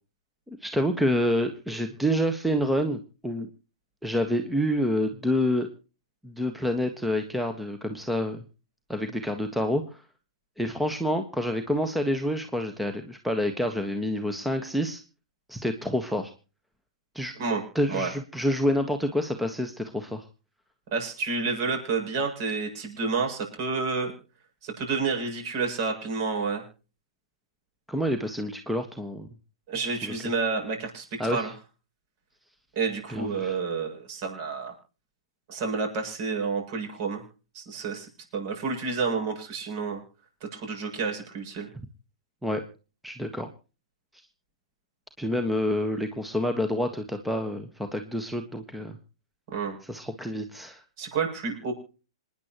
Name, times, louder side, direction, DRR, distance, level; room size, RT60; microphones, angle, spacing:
voice 1, 0.5-3.5 4.0-5.7 6.2-8.4 8.9-10.0 10.6-15.0 15.5-16.3 17.1-17.3 17.7-20.3 27.9-29.3 30.0-30.1 31.2-31.5 33.1-33.6 42.4-42.6 43.0-43.5 45.2-49.0 49.8-50.8, equal, ahead, 7 dB, 1.4 m, -28 dB
voice 2, 20.9-24.1 24.6-26.6 29.7-31.5 32.7-34.7 35.5-37.2 37.5-40.0 40.5-41.7 49.5-49.8 51.0-51.7, right 4 dB, 45° right, 3 dB, 7.9 m, -29 dB
27.5 x 10.5 x 3.0 m, 0.35 s
figure-of-eight pair, 110°, 3 cm